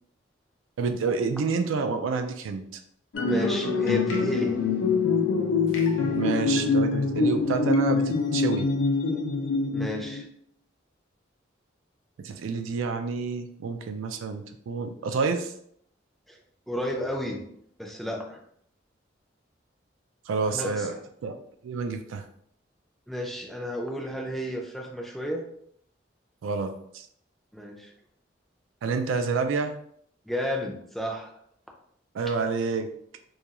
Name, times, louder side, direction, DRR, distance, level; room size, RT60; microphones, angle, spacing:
voice 1, 0.8-2.6 6.1-8.7 12.2-15.5 20.3-20.9 21.2-21.4 21.6-22.2 26.4-27.1 28.8-29.7 32.1-32.9, right 4 dB, 90° right, 6 dB, 0.3 m, -28 dB
sound 1, 3.1-10.2, left 4 dB, 90° left, 0.5 m, -24 dB
voice 2, 3.3-4.6 9.7-10.3 16.3-16.4 16.7-17.4 17.8-18.4 20.5-20.9 23.1-25.4 27.5-27.9 30.3-31.3, equal, ahead, 0 dB, 0.3 m, -32 dB
2.3 x 2.3 x 2.8 m, 0.67 s
head